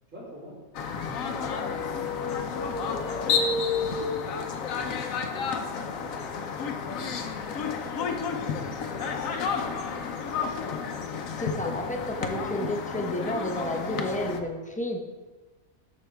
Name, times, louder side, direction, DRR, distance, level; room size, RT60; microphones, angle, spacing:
voice 1, 0.1-0.6 0.9-4.4 4.7-7.4 7.8-10.1, equal, 65° right, -8 dB, 3.5 m, -46 dB
sound 1, 0.7-14.4, left 6 dB, 75° left, 1.2 m, -31 dB
sound 2, 1.2-4.8, left 3 dB, 55° left, 1.2 m, -33 dB
voice 2, 11.4-15.0, equal, 10° left, 2 dB, 0.6 m, -31 dB
13.0 x 5.4 x 3.4 m, 1.2 s
omnidirectional pair, 1.4 m